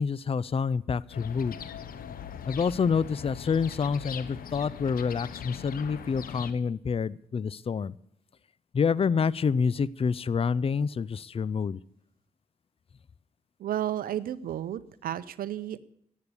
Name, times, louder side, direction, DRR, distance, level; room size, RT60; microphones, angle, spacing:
voice 1, 0.0-1.6 2.5-7.9 8.7-11.8, left 6 dB, 40° left, 22 dB, 0.5 m, -27 dB
sound 1, 1.1-6.5, left 8 dB, 85° left, 1.0 m, -41 dB
voice 2, 13.6-15.8, right 11 dB, 90° right, 16 dB, 0.6 m, -32 dB
12.0 x 8.6 x 9.7 m, 0.70 s
cardioid pair, 55°, 15 cm